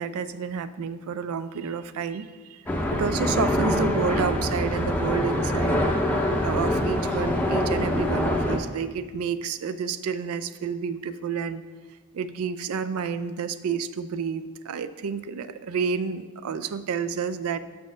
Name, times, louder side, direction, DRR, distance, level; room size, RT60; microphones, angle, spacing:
voice 1, 0.0-2.6 2.9-5.9 6.4-11.6 12.1-17.6, right 6 dB, 80° right, 13 dB, 0.4 m, -30 dB
sound 1, 2.7-8.6, left 1 dB, 5° left, 0.5 m, -24 dB
5.6 x 4.3 x 6.1 m, 1.4 s
head